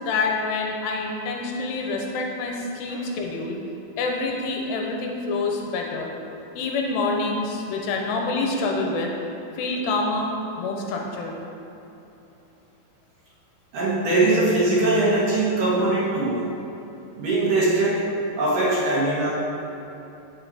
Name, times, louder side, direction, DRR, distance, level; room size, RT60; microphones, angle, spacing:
voice 1, 0.0-3.6 4.0-6.1 6.6-9.1 9.6-11.4, left 3 dB, 80° left, 1 dB, 2.8 m, -27 dB
voice 2, 13.7-16.5 17.2-19.3, right 2 dB, 60° right, -7 dB, 2.8 m, -22 dB
8.5 x 8.0 x 4.2 m, 3.0 s
omnidirectional pair, 5.0 m